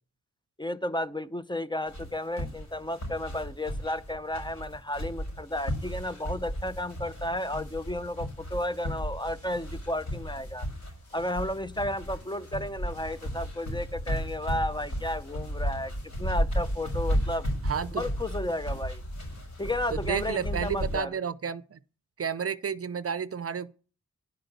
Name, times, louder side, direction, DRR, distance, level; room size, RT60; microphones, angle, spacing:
voice 1, 0.6-10.7 11.1-15.9 16.2-17.5 17.9-19.0 19.6-21.1, left 1 dB, 15° left, 0.6 m, -33 dB
sound 1, 1.9-21.0, equal, 70° left, 6.0 m, -34 dB
sound 2, 5.3-20.0, left 3 dB, 90° left, 4.9 m, -51 dB
voice 2, 17.6-18.0 19.9-21.8 22.2-23.7, right 7 dB, 50° right, 0.6 m, -31 dB
10.5 x 5.1 x 8.1 m
cardioid pair, 45°, 30 cm